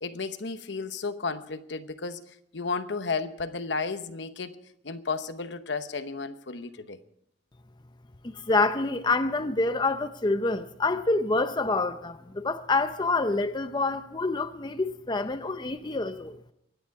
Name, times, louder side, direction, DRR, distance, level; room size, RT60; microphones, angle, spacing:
voice 1, 0.0-4.6 4.8-7.0, left 4 dB, 65° left, 0.9 m, -33 dB
voice 2, 8.2-16.4, left 3 dB, 25° left, 0.6 m, -27 dB
24.0 x 10.0 x 4.7 m
head